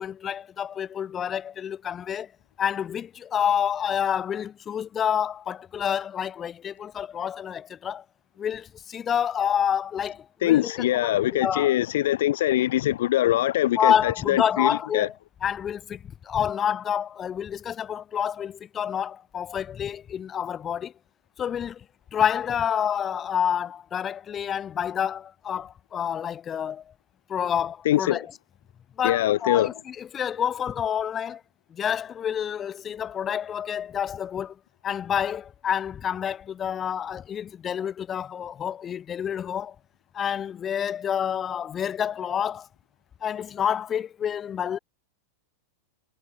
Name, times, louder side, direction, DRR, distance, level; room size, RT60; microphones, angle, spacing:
voice 1, 0.0-2.3 2.6-8.0 8.4-11.8 13.8-15.2 15.4-20.9 21.4-21.8 22.1-26.8 27.3-28.4 29.0-31.4 31.7-34.5 34.8-39.7 40.1-42.7 43.2-44.8, left 8 dB, 15° left, 3.0 m, -28 dB
voice 2, 10.4-15.1 27.9-28.2 29.0-29.7, left 13 dB, 65° left, 0.7 m, -23 dB
supercardioid pair, 170°, 0 cm